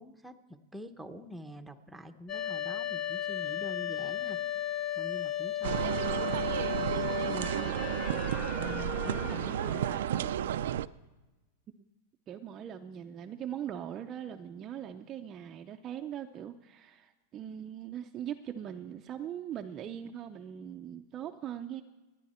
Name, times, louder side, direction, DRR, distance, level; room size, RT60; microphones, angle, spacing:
voice 1, 0.0-4.4 4.9-6.0 6.6-10.4, equal, 5° right, 5 dB, 0.8 m, -46 dB
sound 1, 2.3-10.8, left 10 dB, 25° left, 0.6 m, -36 dB
sound 2, 5.6-10.9, right 11 dB, 80° right, 0.4 m, -32 dB
voice 2, 5.7-6.4 11.7-11.8 12.3-21.8, right 10 dB, 25° right, 4 dB, 0.5 m, -41 dB
27.5 x 9.8 x 4.3 m, 1.1 s
supercardioid pair, 155°, 0 cm